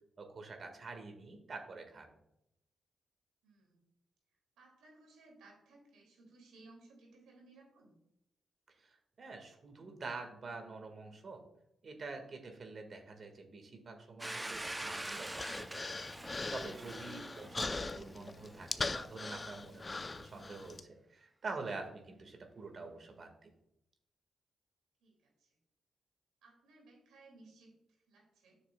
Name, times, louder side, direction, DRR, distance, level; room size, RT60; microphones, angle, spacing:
voice 1, 0.2-2.1 8.8-11.4 11.8-15.8 16.5-23.5, right 3 dB, 55° right, 5 dB, 1.7 m, -47 dB
voice 2, 3.4-3.8 4.6-7.9 25.0-25.6 26.4-28.6, right 2 dB, 85° right, 0 dB, 2.4 m, -61 dB
Domestic sounds home sounds, 14.2-18.8, right 1 dB, 20° right, 0.6 m, -45 dB
Human voice, 14.5-20.8, left 3 dB, 35° left, 0.5 m, -41 dB
10.0 x 6.5 x 2.3 m, 0.80 s
supercardioid pair, 50°, 0 cm